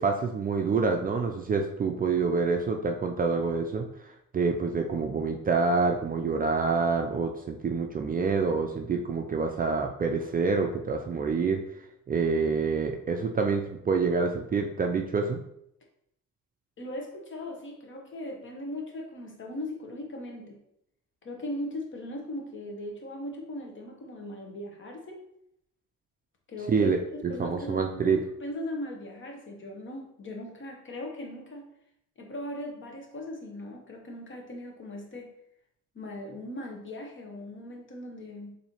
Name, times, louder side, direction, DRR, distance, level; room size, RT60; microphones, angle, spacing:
voice 1, 0.0-3.9 4.3-11.6 12.1-15.4 26.7-28.2, right 4 dB, 30° right, 3 dB, 0.4 m, -27 dB
voice 2, 16.8-20.6 21.2-25.2 26.5-31.7 32.2-35.3 35.9-38.5, left 1 dB, 40° left, 2 dB, 1.0 m, -39 dB
4.1 x 2.7 x 2.9 m, 0.75 s
cardioid pair, 90°, 30 cm